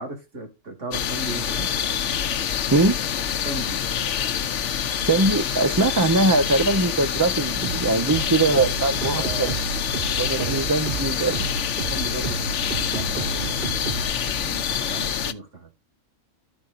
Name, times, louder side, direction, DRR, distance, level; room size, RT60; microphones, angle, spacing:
voice 1, 0.0-1.8 3.4-3.8 9.2-9.5 10.3-10.6 11.9-15.7, right 2 dB, 75° right, 2.9 m, -36 dB
sound 1, 0.9-15.3, left 8 dB, 75° left, 1.1 m, -26 dB
voice 2, 5.0-9.5 10.2-11.5, right 2 dB, 25° right, 0.5 m, -21 dB
sound 2, 7.6-14.1, right 7 dB, 50° right, 0.9 m, -32 dB
14.0 x 4.9 x 2.5 m
omnidirectional pair, 1.3 m